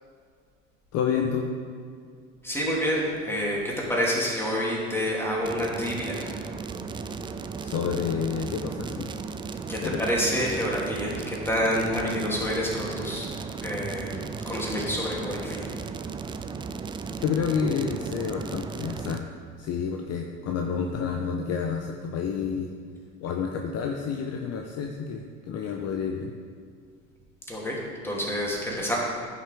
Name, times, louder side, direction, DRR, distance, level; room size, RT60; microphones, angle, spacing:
voice 1, 0.9-1.5 7.6-9.1 9.8-10.1 17.2-19.3 19.6-22.7 23.2-26.3, left 6 dB, 40° left, 3 dB, 0.8 m, -29 dB
voice 2, 2.4-6.3 9.7-13.3 13.6-14.2 14.5-15.7 27.5-27.8 28.0-28.9, equal, 5° left, -4 dB, 2.7 m, -28 dB
sound 1, 5.4-19.2, right 5 dB, 15° right, 0.4 m, -35 dB
15.0 x 5.9 x 3.5 m, 2.1 s
figure-of-eight pair, 65°, 37 cm